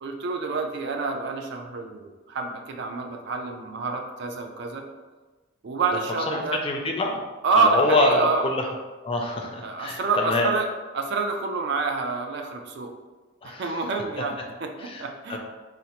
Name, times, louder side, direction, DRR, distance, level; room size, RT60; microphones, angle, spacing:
voice 1, 0.0-4.8 5.6-6.6 7.4-8.5 9.6-10.7 10.9-12.9 13.4-15.4, right 3 dB, 55° right, 4 dB, 0.4 m, -27 dB
voice 2, 6.3-7.2 7.6-8.7 9.0-10.5 13.4-13.7 14.8-15.0 15.3-15.4, left 2 dB, 25° left, 1 dB, 0.4 m, -25 dB
3.9 x 2.1 x 2.9 m, 1.3 s
head